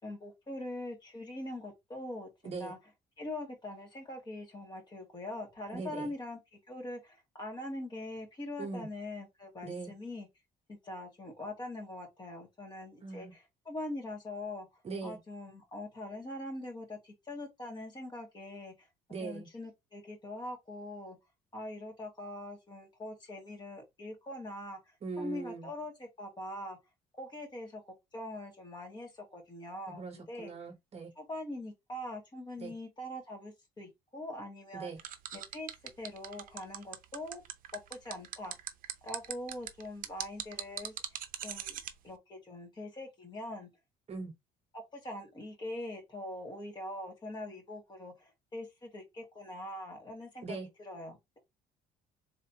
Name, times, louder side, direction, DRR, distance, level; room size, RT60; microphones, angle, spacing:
voice 1, 0.0-2.8 3.2-6.4 6.7-10.3 10.8-14.7 15.0-18.9 19.2-21.2 21.5-26.8 27.1-30.5 31.2-34.9 35.3-37.4 37.7-38.5 39.0-40.9 41.4-43.7 44.7-51.4, left 1 dB, 25° left, 2.1 m, -43 dB
voice 2, 5.7-6.1 8.6-8.9 9.6-9.9 13.0-13.3 14.8-15.2 19.1-19.5 25.0-25.7 29.9-31.1 32.6-32.7 34.7-35.0 44.1-44.3 50.4-50.7, right 4 dB, 35° right, 1.0 m, -40 dB
sound 1, 35.0-41.9, right 10 dB, 55° right, 0.7 m, -40 dB
3.7 x 3.3 x 2.9 m
cardioid pair, 110°, 17 cm